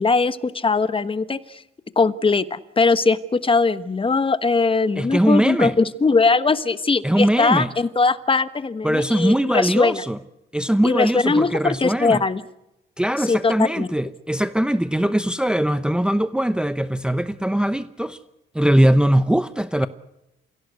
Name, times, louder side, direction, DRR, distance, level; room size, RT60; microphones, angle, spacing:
voice 1, 0.0-1.6 2.0-10.0 10.8-12.4 13.2-13.9, left 4 dB, 25° left, 1.3 m, -20 dB
voice 2, 5.0-5.7 7.0-7.7 8.8-10.2 10.5-12.2 13.0-18.2 18.5-19.9, right 1 dB, 5° right, 0.8 m, -21 dB
29.0 x 16.5 x 8.2 m
cardioid pair, 90°, 20 cm